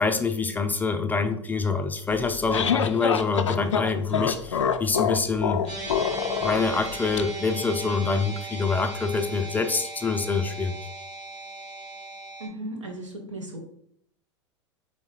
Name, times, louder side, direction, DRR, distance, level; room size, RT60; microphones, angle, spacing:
voice 1, 0.0-5.6 6.4-10.8, left 4 dB, 10° left, 6 dB, 0.4 m, -26 dB
sound 1, 2.1-7.2, left 7 dB, 80° left, 0.4 m, -26 dB
sound 2, 5.7-12.5, right 2 dB, 45° right, 1.6 m, -38 dB
voice 2, 12.4-13.6, right 1 dB, 85° right, 1 dB, 1.2 m, -36 dB
4.5 x 3.2 x 3.1 m, 0.66 s
figure-of-eight pair, 90°, 15 cm